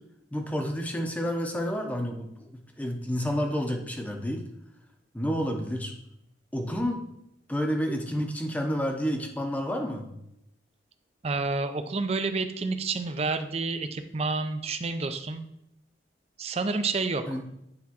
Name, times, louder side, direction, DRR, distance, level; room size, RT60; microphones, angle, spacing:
voice 1, 0.3-2.5 2.8-4.4 5.1-5.9 6.5-7.0 7.5-10.1 17.3-17.4, equal, 10° left, 3 dB, 0.7 m, -29 dB
voice 2, 11.2-15.4 16.4-17.3, right 3 dB, 35° right, 9 dB, 0.4 m, -29 dB
9.5 x 3.5 x 2.9 m, 0.80 s
head